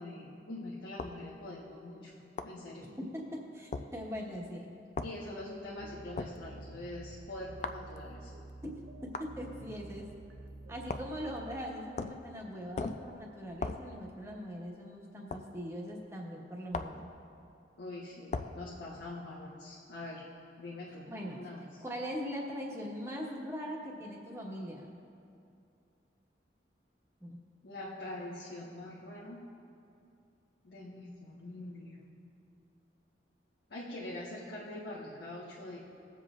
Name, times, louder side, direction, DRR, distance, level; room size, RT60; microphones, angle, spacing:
voice 1, 0.0-2.1 2.4-2.9 5.0-8.3 17.8-20.2 20.6-21.1 21.3-21.8 27.6-29.4 30.6-32.0 33.7-35.8, left 1 dB, 80° left, -6 dB, 1.3 m, -44 dB
sound 1, 1.0-1.2 2.4-2.6 3.7-3.9 5.0-5.2 6.2-6.4 7.6-7.9 9.1-9.3 10.9-11.2 12.0-12.3 12.8-13.1 13.6-13.9 15.3-15.5 16.7-17.0 18.3-18.6, left 3 dB, 40° left, 0.3 m, -37 dB
voice 2, 2.8-4.7 8.6-8.8 9.0-10.1 10.7-17.1 21.1-21.4 21.8-25.0 27.2-27.4, equal, 15° right, -2 dB, 1.3 m, -41 dB
sound 2, 5.8-11.6, right 2 dB, 75° right, 0.5 m, -49 dB
20.5 x 7.5 x 2.5 m, 2.6 s
head